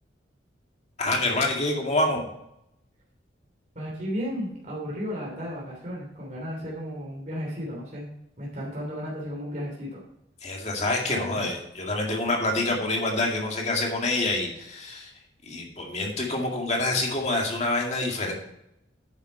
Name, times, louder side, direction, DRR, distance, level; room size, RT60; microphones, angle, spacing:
voice 1, 1.0-2.2 10.4-15.1 15.4-18.3, left 2 dB, 35° left, 0 dB, 2.1 m, -27 dB
voice 2, 3.7-8.1 8.4-10.0 11.0-11.5, equal, 40° right, -4 dB, 3.0 m, -34 dB
9.9 x 7.3 x 4.5 m, 0.81 s
head